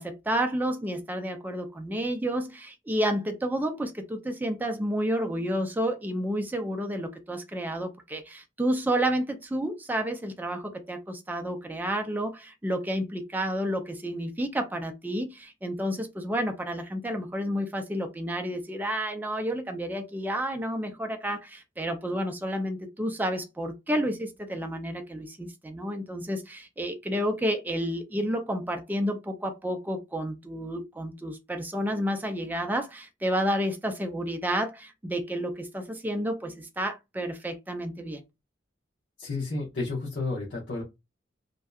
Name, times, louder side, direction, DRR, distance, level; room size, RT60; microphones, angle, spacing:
voice 1, 0.0-38.2, equal, 10° right, 0.3 m, -30 dB
voice 2, 39.2-40.8, left 3 dB, 75° left, 0.8 m, -31 dB
2.6 x 2.1 x 2.3 m
head